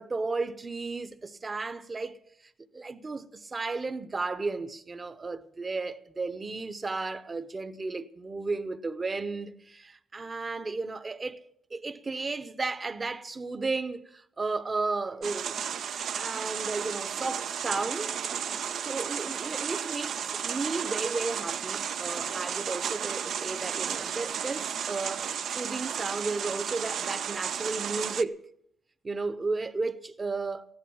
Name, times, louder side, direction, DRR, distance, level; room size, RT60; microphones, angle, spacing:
voice 1, 0.0-11.4 11.7-15.6 16.0-18.2 18.8-28.4 29.0-30.7, right 3 dB, 30° right, 0.9 m, -34 dB
sound 1, 15.2-28.2, right 8 dB, 65° right, 0.6 m, -33 dB
15.5 x 11.5 x 7.1 m
cardioid pair, 90°, 0 cm